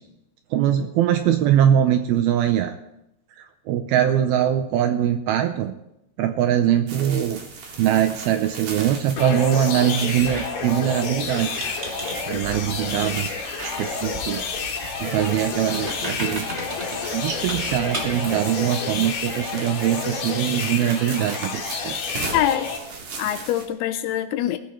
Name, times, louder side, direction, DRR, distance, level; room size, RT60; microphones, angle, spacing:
voice 1, 0.5-2.7 3.4-5.7 6.2-7.4 7.8-11.6 12.3-13.3 13.6-14.5 15.0-16.5 17.1-22.0, right 10 dB, 80° right, 8 dB, 2.2 m, -22 dB
sound 1, 6.9-23.7, right 3 dB, 50° right, 3.2 m, -38 dB
sound 2, 9.2-22.8, left 5 dB, 60° left, 3.2 m, -30 dB
Squeak, 10.2-18.3, right 1 dB, 25° right, 1.4 m, -36 dB
voice 2, 22.3-22.7 23.2-24.6, left 12 dB, 80° left, 10 dB, 2.4 m, -24 dB
21.0 x 14.0 x 3.1 m, 0.84 s
omnidirectional pair, 4.9 m